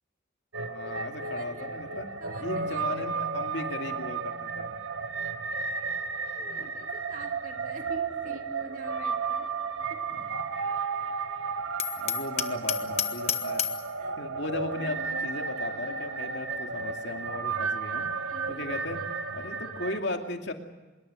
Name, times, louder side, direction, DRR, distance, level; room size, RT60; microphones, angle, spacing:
sound 1, 0.5-20.0, right 4 dB, 85° right, 1.8 m, -33 dB
voice 1, 0.6-2.1 2.4-4.7 6.4-6.7 10.1-10.4 11.9-13.7 14.2-18.1 18.5-19.1 19.3-20.5, left 2 dB, 60° left, 4 dB, 2.5 m, -37 dB
voice 2, 1.2-1.7 2.2-3.1 5.7-5.8 6.3-9.5 9.9-10.1 11.9-12.1 14.0-14.2 18.3-18.7, right 1 dB, 40° right, 4 dB, 2.6 m, -46 dB
Hammer, 11.8-13.9, left 10 dB, 30° left, 1.1 m, -31 dB
24.5 x 22.5 x 6.4 m, 1.2 s
head